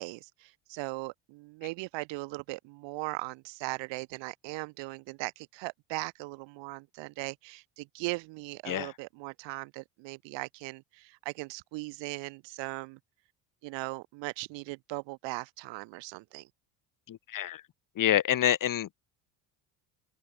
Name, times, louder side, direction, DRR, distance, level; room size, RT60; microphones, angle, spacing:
voice 1, 0.0-13.0 13.6-16.5, right 24 dB, 75° right, 2.2 m, -39 dB
voice 2, 17.1-17.6 18.0-19.0, left 11 dB, 45° left, 1.4 m, -27 dB
supercardioid pair, 80°, 44 cm